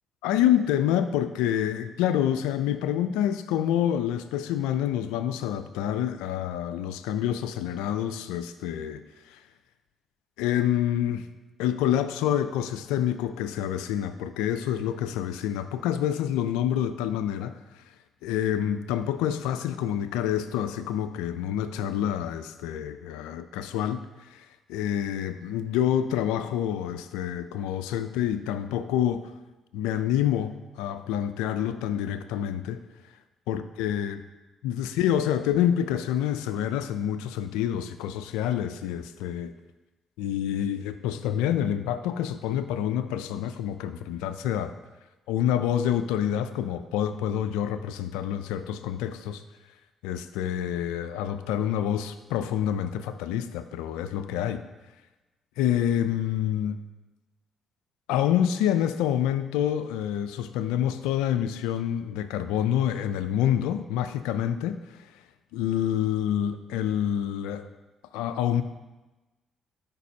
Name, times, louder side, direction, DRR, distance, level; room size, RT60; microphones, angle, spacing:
voice 1, 0.2-9.0 9.3-9.4 10.4-11.3 11.6-17.8 18.2-29.3 29.7-32.8 33.5-34.2 34.6-39.5 40.2-44.7 45.3-49.4 50.0-54.6 55.6-56.8 58.1-65.1 65.5-67.6 68.1-68.6, left 10 dB, 85° left, 10 dB, 0.4 m, -27 dB
13.0 x 5.3 x 2.8 m, 1.1 s
supercardioid pair, 55°, 0 cm